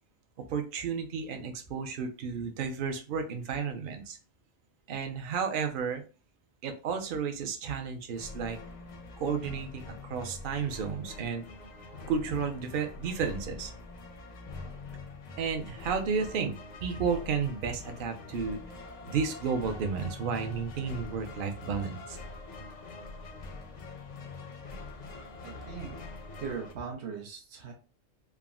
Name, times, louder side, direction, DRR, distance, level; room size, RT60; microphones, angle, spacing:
voice 1, 0.5-4.2 4.9-6.0 6.6-8.6 9.2-11.4 12.1-13.7 15.4-16.5 16.8-18.6 19.1-22.2, right 6 dB, 60° right, 6 dB, 0.6 m, -32 dB
sound 1, 8.1-26.7, left 3 dB, 55° left, 0.5 m, -44 dB
voice 2, 25.4-26.0 26.4-27.7, right 6 dB, 75° right, 1 dB, 1.0 m, -39 dB
3.5 x 2.1 x 2.3 m, 0.34 s
omnidirectional pair, 1.2 m